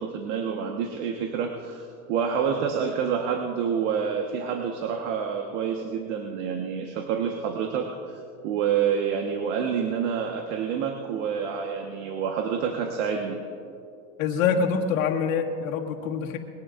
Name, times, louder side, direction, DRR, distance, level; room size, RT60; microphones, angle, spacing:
voice 1, 0.0-13.4, right 7 dB, 65° right, 2 dB, 1.4 m, -28 dB
voice 2, 14.2-16.4, left 6 dB, 90° left, 1 dB, 1.9 m, -25 dB
22.0 x 17.5 x 2.6 m, 2.5 s
supercardioid pair, 165°, 39 cm